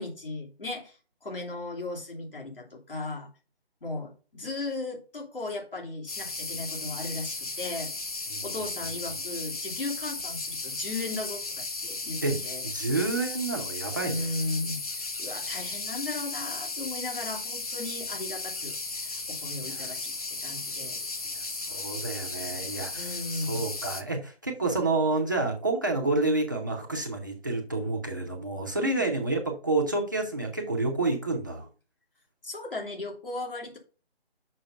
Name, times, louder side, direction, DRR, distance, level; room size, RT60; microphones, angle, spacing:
voice 1, 0.0-3.3 3.8-7.9 8.4-12.6 14.0-20.1 20.4-21.0 22.9-23.6 28.8-29.1 32.4-33.8, left 2 dB, 60° left, 0 dB, 2.9 m, -36 dB
sound 1, 6.1-24.0, left 3 dB, 35° left, 0.9 m, -35 dB
voice 2, 12.6-14.3 19.6-20.1 20.7-20.9 21.3-31.7, right 2 dB, 20° right, -1 dB, 0.7 m, -29 dB
6.6 x 5.5 x 5.2 m, 0.36 s
figure-of-eight pair, 155°, 32 cm